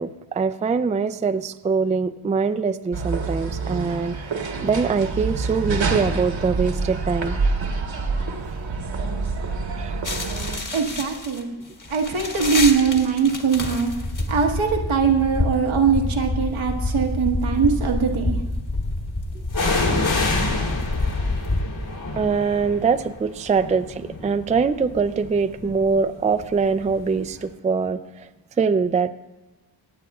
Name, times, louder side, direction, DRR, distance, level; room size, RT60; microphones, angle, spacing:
voice 1, 0.0-4.2 4.6-7.4 9.8-9.9 22.2-28.3 28.6-29.1, right 5 dB, 15° right, 9 dB, 0.3 m, -23 dB
sound 1, 2.9-10.6, right 4 dB, 70° right, 1.4 m, -27 dB
sound 2, 10.0-21.6, left 2 dB, 40° left, 1.6 m, -27 dB
voice 2, 10.7-11.6 11.9-13.9 14.3-18.4, right 6 dB, 85° right, 1 dB, 1.4 m, -21 dB
sound 3, 14.5-14.9 15.7-16.6 19.5-27.1 27.4-27.5, left 2 dB, 70° left, 3.3 m, -28 dB
23.5 x 9.0 x 2.4 m, 1.1 s
cardioid pair, 75°, 47 cm